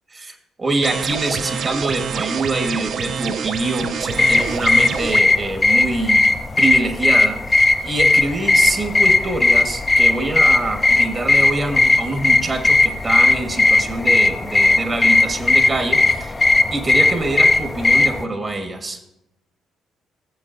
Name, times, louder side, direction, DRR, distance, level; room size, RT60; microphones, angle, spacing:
voice 1, 0.1-6.3 6.6-16.4 16.7-19.0, right 2 dB, 35° right, 5 dB, 1.5 m, -25 dB
sound 1, 0.8-5.2, right 7 dB, 60° right, 0.4 m, -27 dB
sound 2, 4.1-18.2, left 3 dB, 25° left, 0.6 m, -17 dB
15.5 x 7.3 x 2.6 m, 0.89 s
hypercardioid pair, 50°, 0 cm